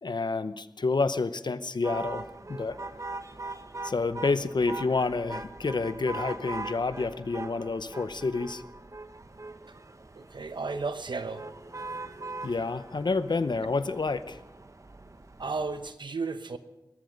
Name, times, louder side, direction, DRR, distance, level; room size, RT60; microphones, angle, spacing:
voice 1, 0.0-2.8 3.8-8.6 12.4-14.4, left 3 dB, 70° left, 13 dB, 0.8 m, -29 dB
sound 1, 1.8-15.9, right 2 dB, 40° right, 0.9 m, -41 dB
voice 2, 10.2-11.5 15.4-16.6, right 4 dB, 90° right, 10 dB, 0.9 m, -33 dB
18.5 x 13.5 x 5.2 m, 0.98 s
wide cardioid pair, 45°, 8 cm